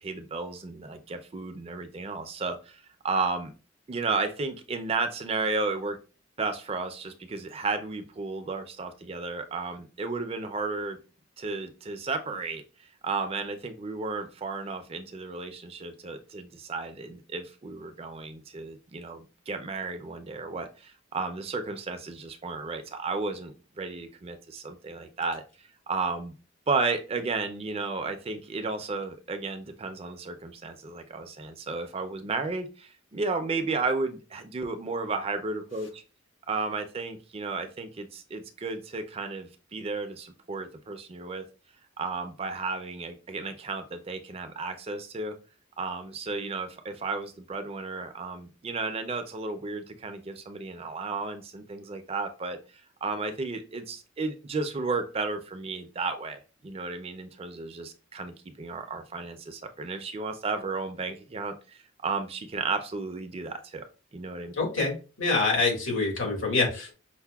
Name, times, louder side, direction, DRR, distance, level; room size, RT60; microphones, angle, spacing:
voice 1, 0.0-3.5 3.9-6.0 6.4-11.0 11.4-12.6 13.0-25.4 25.9-26.3 26.7-36.0 36.5-41.4 42.0-45.3 45.8-52.6 53.0-63.8 64.1-64.5, right 3 dB, 30° right, 8 dB, 0.4 m, -33 dB
voice 2, 64.6-66.9, left 3 dB, 85° left, -1 dB, 1.8 m, -26 dB
5.4 x 2.1 x 2.3 m, 0.34 s
head